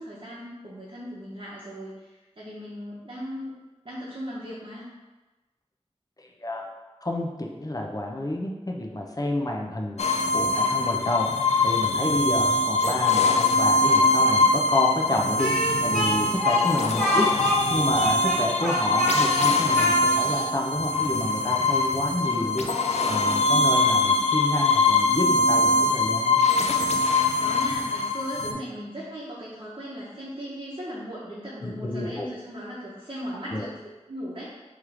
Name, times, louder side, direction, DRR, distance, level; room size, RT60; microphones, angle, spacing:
voice 1, 0.0-3.5 3.8-4.9 22.2-22.7 27.4-34.5, equal, 50° right, -8 dB, 1.0 m, -38 dB
voice 2, 6.2-6.6 7.0-10.0 10.3-17.3 17.7-22.7 23.0-26.4 31.6-32.3 33.5-33.7, left 1 dB, 35° left, 0 dB, 0.7 m, -29 dB
sound 1, 10.0-28.5, left 2 dB, 85° left, 0.4 m, -23 dB
Speech, 15.4-20.5, equal, 5° right, 1.4 m, -27 dB
3.6 x 3.1 x 4.8 m, 1.1 s
wide cardioid pair, 50°, 11 cm